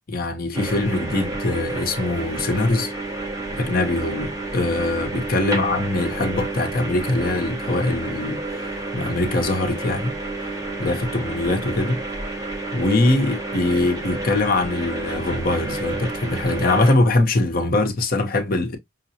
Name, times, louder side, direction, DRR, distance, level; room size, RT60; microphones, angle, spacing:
voice 1, 0.1-2.9 3.5-10.2 10.8-12.0 12.7-18.8, left 2 dB, 45° left, 0.7 m, -22 dB
sound 1, 0.5-17.0, right 2 dB, 15° right, 0.8 m, -30 dB
5.5 x 2.0 x 2.7 m
head